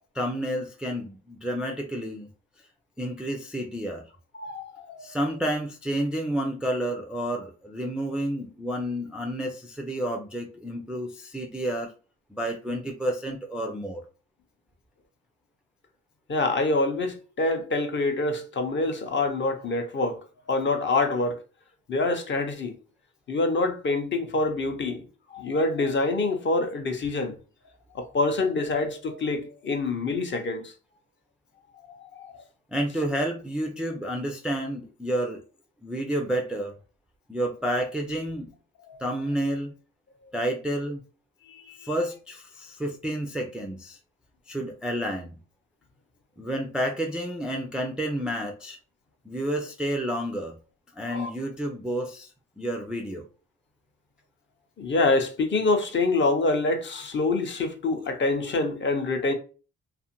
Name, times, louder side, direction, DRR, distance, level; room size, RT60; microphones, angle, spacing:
voice 1, 0.1-2.3 3.0-4.1 5.0-11.9 12.3-14.0 32.7-35.4 35.8-36.7 37.3-38.5 39.0-39.7 40.3-41.0 41.8-44.0 44.5-45.4 46.4-48.8 49.3-50.6 51.0-52.3 52.6-53.2, right 1 dB, 5° right, 0.3 m, -30 dB
voice 2, 4.3-5.0 16.3-20.2 20.5-21.4 21.9-22.8 23.3-25.0 25.3-27.4 27.9-30.7 31.9-32.4 38.8-39.0 41.5-41.9 51.1-51.3 54.8-59.3, left 3 dB, 40° left, 0.6 m, -26 dB
2.5 x 2.4 x 2.8 m
cardioid pair, 90°, 30 cm